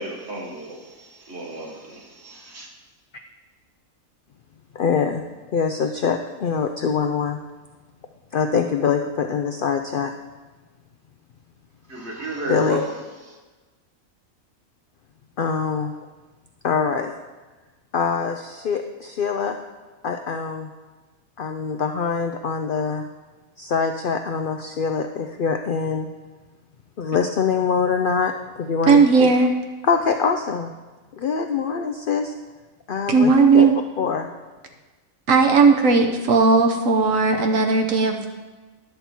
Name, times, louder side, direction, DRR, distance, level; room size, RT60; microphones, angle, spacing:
voice 1, 0.0-2.0 2.5-2.7 11.9-12.9 13.3-13.4, right 1 dB, 50° right, 2.0 m, -32 dB
voice 2, 4.7-5.2 5.5-7.4 8.3-10.1 12.5-12.8 15.4-15.9 16.6-17.1 17.9-19.6 20.0-20.7 21.4-23.0 23.6-26.1 27.0-28.3 28.6-29.3 29.8-30.7 31.2-32.3 32.9-33.7 34.0-34.3, left 6 dB, 65° left, 0.5 m, -24 dB
voice 3, 28.9-29.5 33.1-33.7 35.3-38.3, right 4 dB, 70° right, 1.2 m, -16 dB
10.5 x 6.9 x 4.4 m
omnidirectional pair, 1.5 m